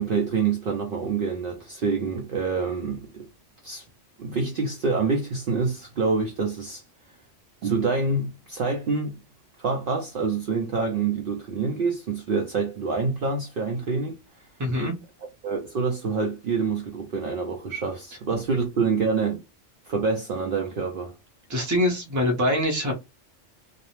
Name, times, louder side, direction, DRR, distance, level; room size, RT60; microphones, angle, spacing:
voice 1, 0.0-3.3 3.6-3.8 4.2-6.8 7.6-9.2 9.6-14.2 15.4-19.4 19.9-21.1, right 4 dB, 60° right, 0.6 m, -26 dB
voice 2, 14.6-14.9 21.5-23.0, left 1 dB, 20° right, 0.5 m, -24 dB
2.5 x 2.0 x 2.9 m
omnidirectional pair, 1.3 m